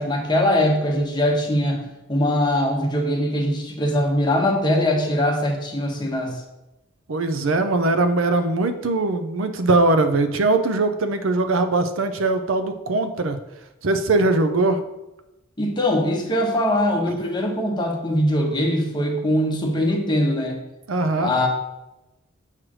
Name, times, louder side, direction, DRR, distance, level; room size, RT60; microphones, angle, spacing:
voice 1, 0.0-6.4 15.6-20.6 21.2-21.5, left 1 dB, 20° left, 0 dB, 1.1 m, -22 dB
voice 2, 7.1-13.4 13.8-14.8 20.9-21.3, right 2 dB, 75° right, 9 dB, 0.6 m, -21 dB
7.4 x 3.2 x 6.1 m, 0.97 s
head